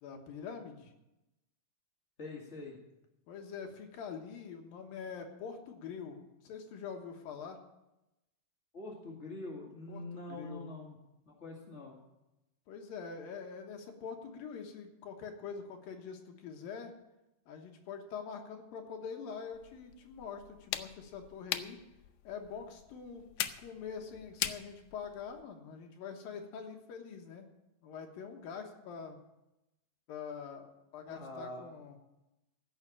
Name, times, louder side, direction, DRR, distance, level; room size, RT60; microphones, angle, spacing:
voice 1, 0.0-0.9 3.3-7.6 9.9-10.7 12.7-16.9 17.5-21.8 22.2-23.3 23.6-27.4 27.8-29.2 30.1-32.0, left 6 dB, 70° left, 3 dB, 2.8 m, -44 dB
voice 2, 2.2-2.8 8.7-11.0 11.2-12.0 31.1-31.6, left 2 dB, 45° left, -2 dB, 0.9 m, -44 dB
sound 1, 19.5-25.4, left 12 dB, 85° left, 2.0 m, -42 dB
15.5 x 6.4 x 8.6 m, 0.94 s
omnidirectional pair, 4.6 m